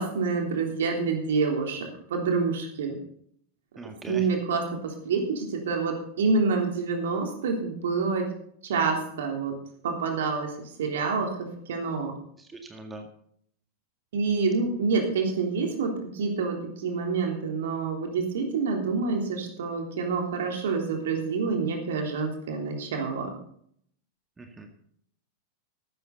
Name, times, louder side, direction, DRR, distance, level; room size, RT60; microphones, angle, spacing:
voice 1, 0.0-3.0 4.1-8.3 8.6-9.6 9.8-12.1 14.1-23.3, right 4 dB, 60° right, 3 dB, 3.5 m, -27 dB
voice 2, 3.8-4.3 12.4-13.1 24.4-24.7, right 2 dB, 15° right, 4 dB, 1.9 m, -42 dB
14.5 x 12.5 x 4.1 m, 0.65 s
figure-of-eight pair, 90°, 0 cm